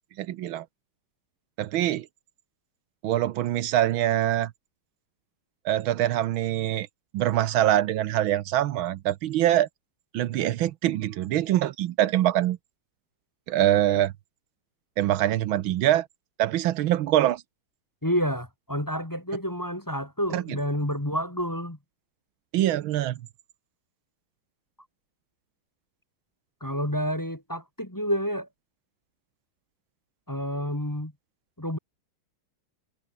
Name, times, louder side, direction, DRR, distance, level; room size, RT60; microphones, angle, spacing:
voice 1, 0.2-0.6 1.6-2.1 3.0-4.5 5.6-6.9 7.1-9.7 10.1-12.6 13.5-14.1 15.0-16.1 16.4-17.4 20.3-20.4 22.5-23.2, right 13 dB, 80° right, 1.6 m, -24 dB
voice 2, 18.0-21.8 26.6-28.5 30.3-31.1 31.6-31.8, equal, 10° left, 1.9 m, -29 dB
omnidirectional pair, 2.3 m